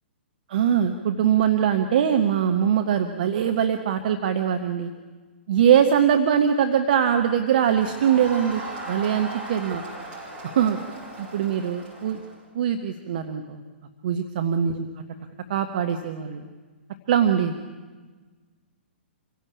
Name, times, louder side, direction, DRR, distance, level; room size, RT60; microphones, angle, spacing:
voice 1, 0.5-4.9 5.5-8.6 8.9-9.8 10.5-10.8 11.2-12.2 12.5-13.6 14.0-14.9 15.5-16.5 17.1-17.5, right 8 dB, 50° right, 6 dB, 1.4 m, -22 dB
Crowd, 7.6-12.4, right 2 dB, 15° right, 7.6 m, -38 dB
27.0 x 16.5 x 8.6 m, 1.4 s
figure-of-eight pair, 115°, 6 cm